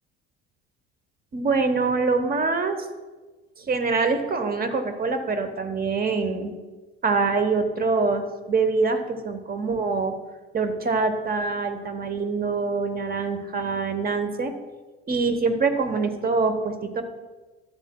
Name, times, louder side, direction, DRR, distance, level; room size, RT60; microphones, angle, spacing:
voice 1, 1.3-2.8 3.6-6.5 7.0-10.1 10.5-14.5 15.1-17.0, right 4 dB, 30° right, 8 dB, 1.0 m, -24 dB
12.5 x 7.1 x 2.3 m, 1.3 s
figure-of-eight pair, 55°, 31 cm